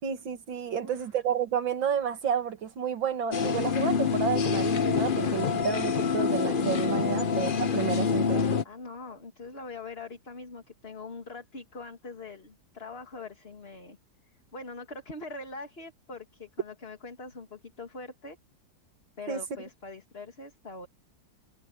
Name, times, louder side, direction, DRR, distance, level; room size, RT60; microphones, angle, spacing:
voice 1, 0.0-8.6 19.3-19.4, right 7 dB, 80° right, 2.4 m, -31 dB
sound 1, 3.3-8.6, left 6 dB, 50° left, 0.6 m, -26 dB
voice 2, 8.6-14.0 14.5-18.4 19.2-20.9, left 3 dB, 30° left, 2.4 m, -43 dB
omnidirectional pair, 2.1 m